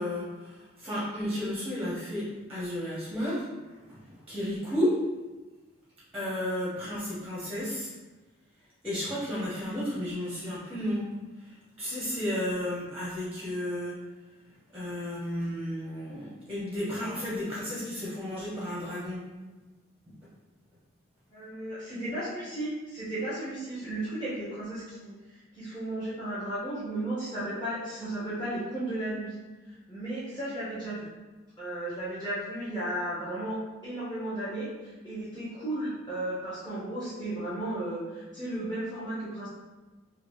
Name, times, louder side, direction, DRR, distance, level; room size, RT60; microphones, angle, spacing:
voice 1, 0.0-3.5 3.7-5.0 6.1-7.9 8.8-11.1 11.4-14.0 14.7-19.3 20.1-20.2, equal, 10° right, -8 dB, 0.7 m, -33 dB
voice 2, 21.3-29.3 29.7-31.1 31.6-33.6 33.8-39.5, right 1 dB, 25° left, -11 dB, 0.9 m, -34 dB
3.2 x 2.3 x 3.0 m, 1.2 s
head